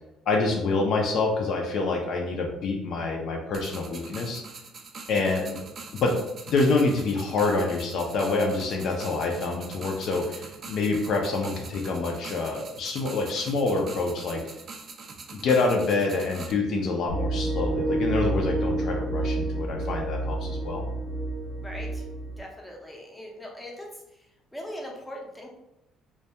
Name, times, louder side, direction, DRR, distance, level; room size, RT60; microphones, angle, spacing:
voice 1, 0.3-4.4 5.1-5.6 5.9-6.2 6.5-14.4 15.3-20.8, left 3 dB, 60° left, 1 dB, 0.4 m, -26 dB
sound 1, 3.5-16.5, right 4 dB, 40° right, 0.3 m, -43 dB
sound 2, 17.1-22.4, right 2 dB, 70° right, 0.7 m, -29 dB
voice 2, 21.6-22.1 22.4-23.9 24.5-25.5, equal, 5° left, -2 dB, 0.5 m, -40 dB
2.2 x 2.1 x 2.7 m, 0.86 s
cardioid pair, 115°, 0 cm